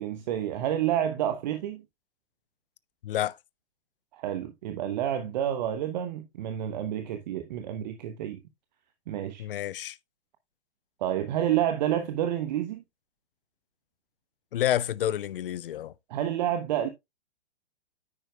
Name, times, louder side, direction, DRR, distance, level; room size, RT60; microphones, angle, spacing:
voice 1, 0.0-1.8 4.1-8.4 9.1-9.4 11.0-12.8 16.1-16.9, right 11 dB, 40° right, 1.0 m, -29 dB
voice 2, 3.0-3.4 9.4-10.0 14.5-15.9, left 11 dB, 55° left, 0.6 m, -29 dB
9.8 x 8.8 x 2.3 m
figure-of-eight pair, 110°, 32 cm